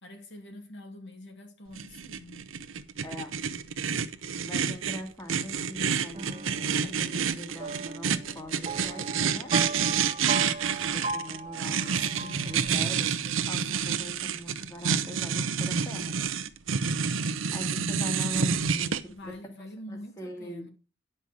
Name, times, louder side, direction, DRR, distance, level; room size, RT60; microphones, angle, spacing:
voice 1, 0.0-2.5 12.0-13.6 19.1-20.7, left 1 dB, 65° left, 2.5 m, -45 dB
sound 1, 1.8-19.0, right 6 dB, 80° right, 0.8 m, -29 dB
voice 2, 3.0-3.3 4.4-9.5 10.9-13.1 13.5-16.2 17.5-18.9 19.2-19.4 19.9-20.7, left 1 dB, 15° left, 1.6 m, -41 dB
sound 2, 6.1-13.1, right 3 dB, 30° right, 0.7 m, -38 dB
9.9 x 5.5 x 6.1 m
head